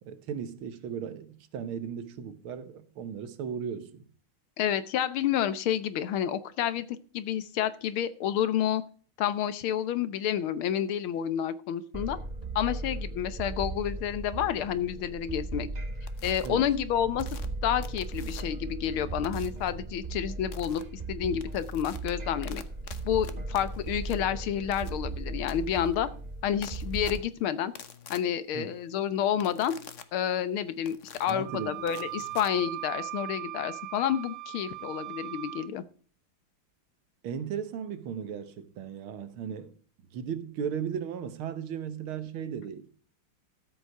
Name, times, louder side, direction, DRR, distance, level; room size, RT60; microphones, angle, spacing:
voice 1, 0.0-4.0 16.4-16.7 28.5-28.7 31.3-31.8 37.2-39.7 40.1-42.9, right 7 dB, 80° right, 2.0 m, -36 dB
voice 2, 4.6-6.9 7.1-8.8 9.2-12.2 12.5-15.7 16.2-17.3 17.6-20.8 21.1-22.6 23.0-26.1 26.4-27.7 28.1-29.7 30.1-35.8, left 10 dB, 85° left, 1.8 m, -29 dB
sound 1, 11.9-27.2, right 2 dB, 40° right, 0.6 m, -37 dB
sound 2, 16.1-16.5 17.2-18.7 19.2-19.7 20.5-20.8 21.2-33.1, left 7 dB, 50° left, 1.0 m, -48 dB
Wind instrument woodwind instrument, 31.4-35.7, right 17 dB, 60° right, 1.0 m, -39 dB
13.0 x 8.0 x 4.6 m
omnidirectional pair, 2.3 m